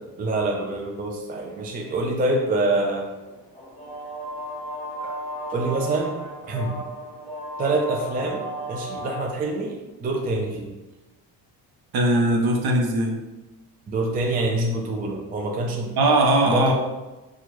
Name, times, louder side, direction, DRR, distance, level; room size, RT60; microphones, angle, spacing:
voice 1, 0.2-3.1 5.0-5.1 5.5-6.1 6.5-6.8 7.6-8.4 8.7-10.7 13.9-15.9 16.5-16.7, right 2 dB, 20° right, 1 dB, 0.4 m, -26 dB
sound 1, 1.4-9.3, equal, ahead, 1.5 m, -35 dB
voice 2, 11.9-13.1 16.0-16.7, right 1 dB, 60° right, 2 dB, 0.8 m, -19 dB
4.5 x 2.4 x 3.0 m, 1.1 s
cardioid pair, 125°, 43 cm